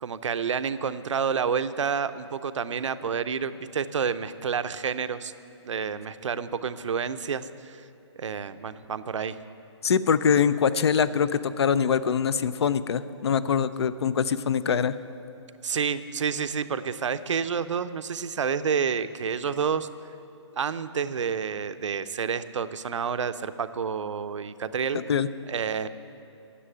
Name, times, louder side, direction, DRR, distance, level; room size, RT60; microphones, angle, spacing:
voice 1, 0.0-5.3 5.6-7.8 8.2-9.4 15.6-19.9 20.6-25.0 25.5-25.9, right 6 dB, 80° right, 12 dB, 0.6 m, -29 dB
voice 2, 9.8-15.0 25.1-25.3, left 7 dB, 60° left, 15 dB, 0.5 m, -23 dB
10.0 x 7.5 x 9.2 m, 2.7 s
hypercardioid pair, 165°, 16 cm